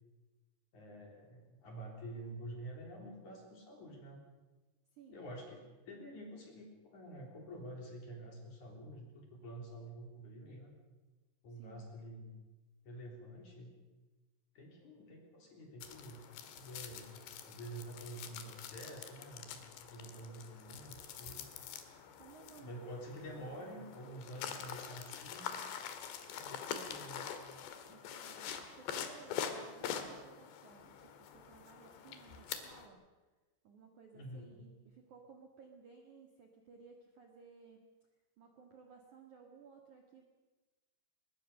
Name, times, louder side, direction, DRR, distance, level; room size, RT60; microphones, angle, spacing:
voice 1, 0.7-4.2 5.1-10.7 11.4-12.3 12.8-13.7 14.5-21.4 22.6-25.7 26.3-27.3 34.1-34.6, right 1 dB, 40° left, 1 dB, 4.3 m, -49 dB
voice 2, 4.9-5.3 11.5-11.9 20.3-20.5 22.2-22.9 23.4-23.7 24.0-24.6 27.9-33.0 33.6-37.8 38.4-40.2, right 5 dB, 55° right, 2 dB, 2.3 m, -58 dB
sound 1, 15.8-32.9, left 8 dB, 65° left, 3.6 m, -45 dB
23.0 x 21.0 x 6.7 m, 1.2 s
omnidirectional pair, 5.9 m